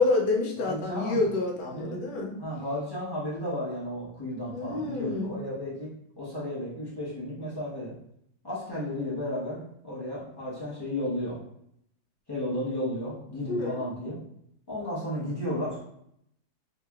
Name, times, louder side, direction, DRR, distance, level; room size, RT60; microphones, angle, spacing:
voice 1, 0.0-2.3 4.5-5.3 13.5-13.8, left 3 dB, 75° left, 1 dB, 1.3 m, -27 dB
voice 2, 0.6-1.2 1.6-2.0 2.4-5.9 6.2-7.9 8.4-11.4 12.3-14.2 14.7-15.9, left 1 dB, 35° left, -9 dB, 0.4 m, -33 dB
3.1 x 2.9 x 2.3 m, 0.73 s
omnidirectional pair, 2.0 m